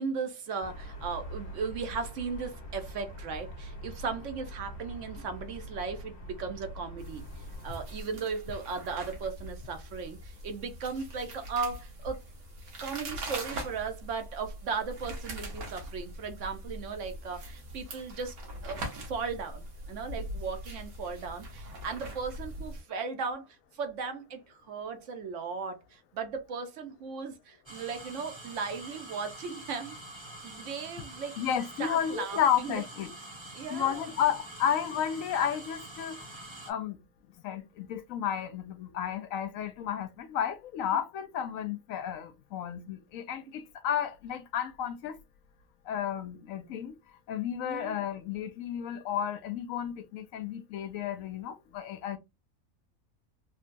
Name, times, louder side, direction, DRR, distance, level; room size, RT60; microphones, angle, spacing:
voice 1, 0.0-12.2 12.8-18.3 18.6-23.5 23.7-30.0 30.4-31.4 31.8-32.7 33.5-34.0 47.6-48.0, right 5 dB, 65° right, 0.9 m, -37 dB
sound 1, 0.6-8.0, equal, 50° left, 1.4 m, -43 dB
sound 2, 7.0-22.8, right 1 dB, 85° right, 1.5 m, -42 dB
sound 3, 27.7-36.7, right 1 dB, 25° right, 0.8 m, -46 dB
voice 2, 31.4-33.1 33.7-36.3 36.7-37.0 37.4-45.2 45.9-46.9 47.3-52.2, left 9 dB, 75° left, 0.9 m, -32 dB
3.7 x 2.2 x 2.5 m
omnidirectional pair, 1.5 m